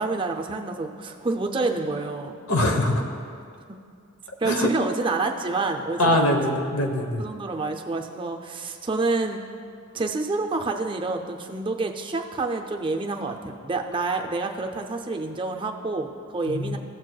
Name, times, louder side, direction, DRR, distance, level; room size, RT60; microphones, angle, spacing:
voice 1, 0.0-2.4 4.4-6.4 7.2-9.4 9.9-16.8, right 3 dB, 25° right, 3 dB, 0.4 m, -28 dB
voice 2, 2.5-3.0 4.4-4.7 6.0-7.2 16.5-16.8, left 1 dB, 85° left, 3 dB, 1.0 m, -22 dB
15.0 x 6.3 x 2.3 m, 2.4 s
head